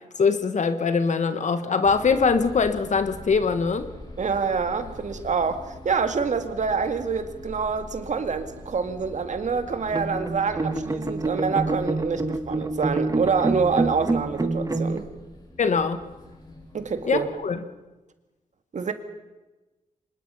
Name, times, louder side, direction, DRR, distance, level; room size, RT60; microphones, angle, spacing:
voice 1, 0.2-3.9 15.6-16.0 17.0-17.6, left 5 dB, 60° left, 10 dB, 1.5 m, -22 dB
sound 1, 1.8-17.3, left 1 dB, 35° left, 6.0 m, -44 dB
voice 2, 4.2-15.1 16.7-17.3 18.7-18.9, right 5 dB, 60° right, 8 dB, 1.9 m, -26 dB
sound 2, 9.9-15.0, right 2 dB, 25° right, 1.5 m, -27 dB
24.5 x 20.5 x 5.6 m, 1.1 s
cardioid pair, 80°, 14 cm